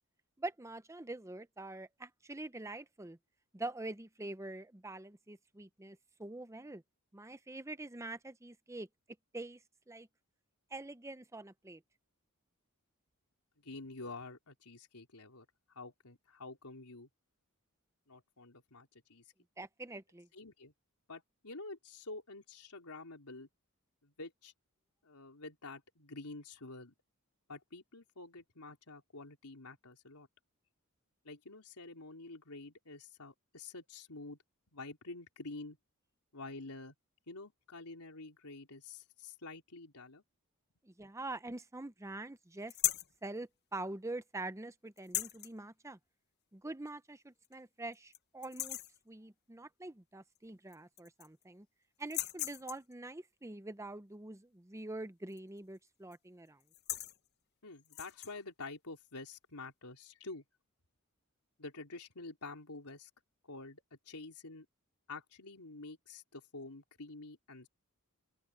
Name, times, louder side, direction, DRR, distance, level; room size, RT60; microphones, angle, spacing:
voice 1, 0.4-3.2 3.5-6.8 7.1-8.9 9.3-9.6 9.9-10.1 10.7-11.8 19.6-20.3 40.8-42.7 43.2-46.0 46.5-48.8 49.1-51.7 52.0-56.6, right 2 dB, 15° right, 0.7 m, -45 dB
voice 2, 13.6-17.1 18.1-19.3 20.3-20.7 21.1-23.5 24.0-24.5 25.0-26.9 27.5-30.3 31.2-34.4 34.7-35.8 36.3-36.9 37.3-40.2 57.6-60.4 61.6-63.1 63.4-64.7 65.1-67.7, left 3 dB, 90° left, 3.7 m, -48 dB
sound 1, 42.7-43.2 45.0-45.5 46.9-47.0 47.4-47.5 47.9-48.2 48.4-49.0 50.4-50.5 50.7-51.4 52.0-52.9 55.3-55.6 55.9-56.2 56.6-57.2 57.9-58.3, left 14 dB, 45° left, 0.8 m, -37 dB
open air
head